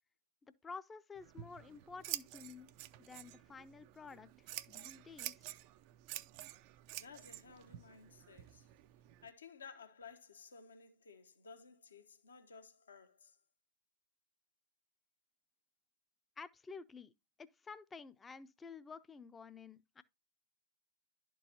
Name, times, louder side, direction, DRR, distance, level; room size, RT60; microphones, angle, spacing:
voice 1, 0.6-2.7 3.0-5.5 16.4-17.1 17.4-20.0, left 5 dB, 15° left, 0.5 m, -51 dB
Scissors, 1.1-9.3, right 15 dB, 45° right, 0.4 m, -49 dB
voice 2, 7.0-8.7 9.2-13.4, left 5 dB, 70° left, 1.0 m, -56 dB
11.5 x 4.6 x 2.8 m
figure-of-eight pair, 90°, 0 cm